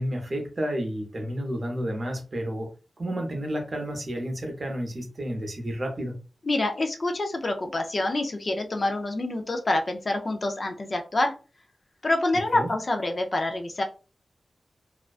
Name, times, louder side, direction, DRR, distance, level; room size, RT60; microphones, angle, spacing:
voice 1, 0.0-2.7 3.0-6.2 12.5-12.7, equal, 45° right, 3 dB, 0.7 m, -31 dB
voice 2, 6.5-11.3 12.0-13.8, left 2 dB, 40° left, 4 dB, 0.4 m, -26 dB
2.4 x 2.1 x 2.4 m, 0.33 s
wide cardioid pair, 90°, 0 cm